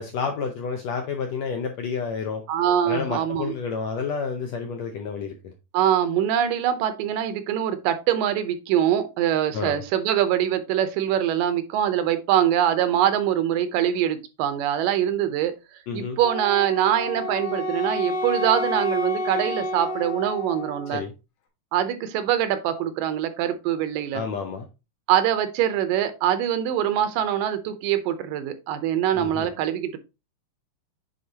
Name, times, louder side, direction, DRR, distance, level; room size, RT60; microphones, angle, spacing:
voice 1, 0.0-2.4 2.8-5.5 9.5-9.8 15.9-16.2 20.9-21.1 24.1-24.7 29.1-29.5, left 5 dB, 75° left, 4 dB, 1.6 m, -30 dB
voice 2, 2.5-3.5 5.7-15.5 15.9-21.0 21.7-24.2 25.1-30.0, right 10 dB, 80° right, 10 dB, 2.4 m, -23 dB
Wind instrument woodwind instrument, 16.2-21.0, left 1 dB, 60° left, 2.0 m, -29 dB
9.4 x 4.0 x 2.8 m, 0.27 s
omnidirectional pair, 3.9 m